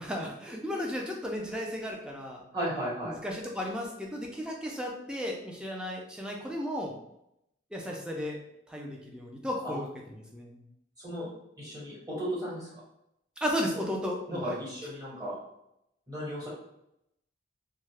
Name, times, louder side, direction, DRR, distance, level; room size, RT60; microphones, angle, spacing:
voice 1, 0.0-2.4 3.0-6.9 7.7-8.4 8.7-9.9 10.3-10.6 13.4-14.6, equal, 5° right, -1 dB, 0.4 m, -34 dB
voice 2, 2.5-3.2 9.6-9.8 11.0-11.3 11.6-12.8 14.3-15.3 16.1-16.5, equal, 20° right, -7 dB, 1.2 m, -35 dB
2.7 x 2.3 x 3.3 m, 0.81 s
head